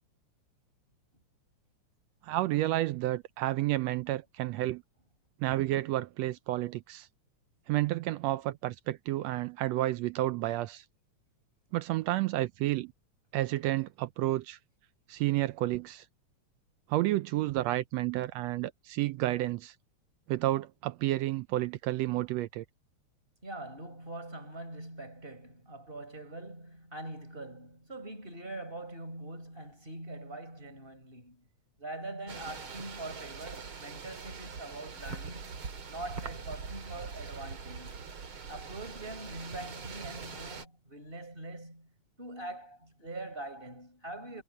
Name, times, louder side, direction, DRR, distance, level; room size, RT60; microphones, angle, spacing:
voice 1, 2.2-4.8 5.4-7.1 7.7-10.8 11.7-12.9 13.3-14.6 15.1-16.0 16.9-19.7 20.3-22.6, right 16 dB, 80° right, 1.6 m, -30 dB
voice 2, 23.4-31.4 31.8-38.0 38.5-41.9 42.2-44.4, right 2 dB, 15° right, 5.3 m, -43 dB
sound 1, 32.3-40.7, right 5 dB, 45° right, 3.2 m, -43 dB
omnidirectional pair, 3.3 m